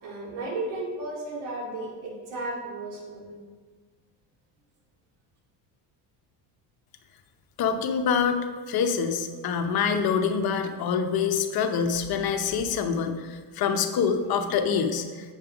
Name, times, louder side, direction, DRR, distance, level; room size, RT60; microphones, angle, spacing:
voice 1, 0.0-3.3, right 2 dB, 85° right, -2 dB, 2.5 m, -34 dB
voice 2, 7.6-8.4 8.7-15.0, left 6 dB, 55° left, 6 dB, 0.9 m, -25 dB
8.0 x 5.4 x 5.0 m, 1.5 s
cardioid pair, 120°, 43 cm